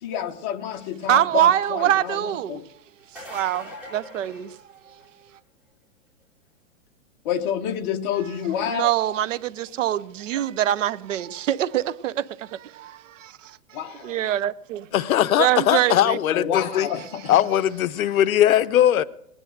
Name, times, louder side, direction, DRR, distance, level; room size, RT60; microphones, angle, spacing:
voice 1, 0.0-2.6 7.2-8.9 13.7-14.2 16.3-17.0, left 9 dB, 30° left, 1.2 m, -28 dB
voice 2, 1.1-2.6 3.1-4.6 8.7-14.9 15.4-16.2 19.0-19.1, right 12 dB, 60° right, 0.7 m, -24 dB
sound 1, 3.0-5.2 10.7-10.8 12.7-12.8, left 1 dB, 5° right, 3.2 m, -42 dB
voice 3, 14.9-16.9 17.3-19.0, left 11 dB, 70° left, 0.8 m, -20 dB
19.5 x 9.9 x 6.4 m
hypercardioid pair, 160°, 43 cm